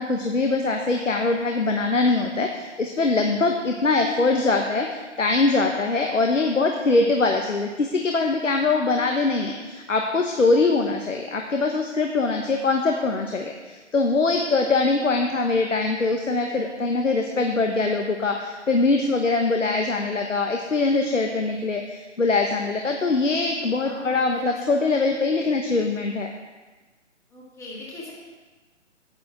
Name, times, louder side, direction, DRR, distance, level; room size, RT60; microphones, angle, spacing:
voice 1, 0.0-26.3, left 3 dB, 90° left, 3 dB, 1.1 m, -23 dB
voice 2, 23.8-24.5 24.8-25.0 27.3-28.1, left 2 dB, 10° left, -4 dB, 1.5 m, -40 dB
9.4 x 9.0 x 4.2 m, 1.3 s
figure-of-eight pair, 150°, 37 cm